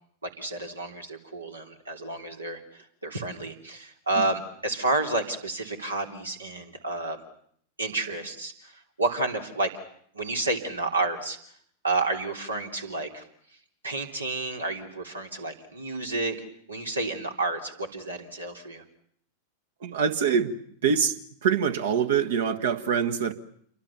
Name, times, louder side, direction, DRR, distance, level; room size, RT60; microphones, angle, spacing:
voice 1, 0.2-7.2 7.8-9.7 10.1-11.4 11.8-13.2 13.8-16.4 16.7-18.8, right 2 dB, 80° right, 3.3 m, -30 dB
voice 2, 19.8-20.5 20.8-23.3, right 7 dB, 60° right, 1.7 m, -25 dB
28.5 x 23.5 x 7.1 m
figure-of-eight pair, 90°, 0 cm